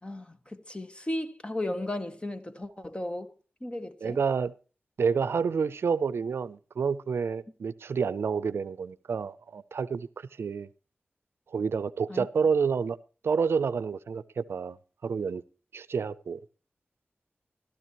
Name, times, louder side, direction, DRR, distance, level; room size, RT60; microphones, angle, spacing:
voice 1, 0.0-3.3 3.6-4.2 12.1-12.3, left 1 dB, 25° left, 1.7 m, -35 dB
voice 2, 4.0-4.5 5.0-10.7 11.5-13.0 13.2-14.8 15.0-15.4 15.7-16.4, right 5 dB, 85° right, 0.5 m, -29 dB
15.0 x 13.5 x 3.0 m
cardioid pair, 50°, 4 cm